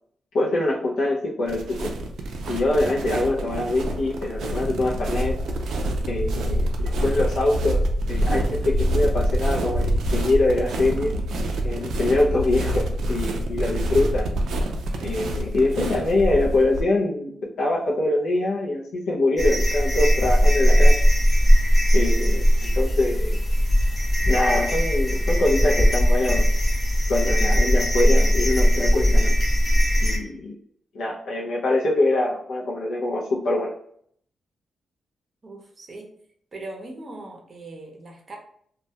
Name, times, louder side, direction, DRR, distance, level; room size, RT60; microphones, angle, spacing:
voice 1, 0.3-1.9 2.5-5.4 6.1-7.8 8.1-11.1 11.6-14.3 15.0-21.0 21.9-23.4 24.3-26.5 27.1-29.3 30.0-30.5 30.9-33.7, left 2 dB, 85° left, -4 dB, 0.4 m, -24 dB
sound 1, 1.5-16.8, right 1 dB, 90° right, 0.3 m, -26 dB
sound 2, 19.4-30.2, equal, 30° left, 0.8 m, -19 dB
voice 2, 35.4-36.1 36.5-38.4, right 2 dB, 35° right, 0 dB, 0.6 m, -39 dB
2.1 x 2.1 x 2.7 m, 0.65 s
cardioid pair, 105°, 0 cm